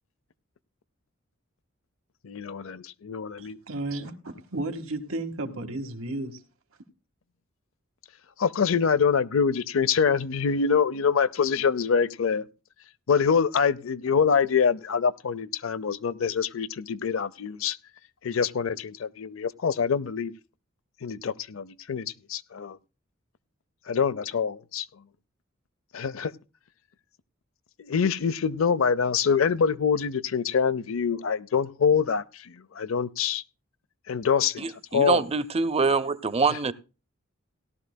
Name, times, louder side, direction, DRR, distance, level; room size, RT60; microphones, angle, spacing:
voice 1, 2.2-3.6 8.4-12.4 13.1-17.8 18.2-20.3 21.0-22.8 23.9-24.9 25.9-26.3 27.9-33.4 34.1-34.6 34.9-35.2, left 6 dB, 75° left, 0.6 m, -25 dB
voice 2, 3.4-6.4, right 2 dB, 85° right, 1.7 m, -33 dB
voice 3, 34.6-36.7, right 4 dB, 30° right, 0.6 m, -25 dB
17.5 x 12.0 x 2.2 m
head